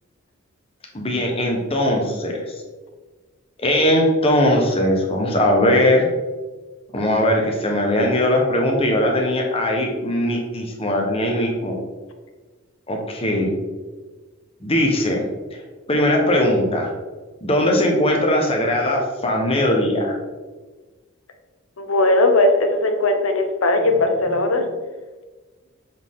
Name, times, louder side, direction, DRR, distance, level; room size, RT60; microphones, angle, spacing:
voice 1, 0.9-2.6 3.6-6.1 6.9-11.7 12.9-13.5 14.6-15.3 15.9-16.9 17.4-20.2, left 1 dB, 25° left, 1 dB, 1.0 m, -20 dB
voice 2, 21.8-24.6, left 2 dB, 75° left, 5 dB, 0.9 m, -18 dB
7.1 x 4.2 x 3.7 m, 1.3 s
head